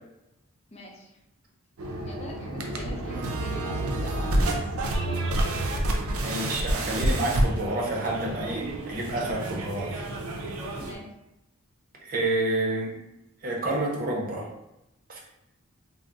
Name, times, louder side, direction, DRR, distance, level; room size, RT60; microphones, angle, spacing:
voice 1, 0.7-1.1 2.0-4.5 10.8-11.0, left 1 dB, 30° left, -1 dB, 0.6 m, -42 dB
sound 1, 1.8-11.0, right 1 dB, 85° right, 0.5 m, -29 dB
voice 2, 6.2-10.0 12.0-12.9 13.4-14.5 15.1-15.2, right 1 dB, 45° right, -2 dB, 0.7 m, -29 dB
2.3 x 2.0 x 3.8 m, 0.89 s
head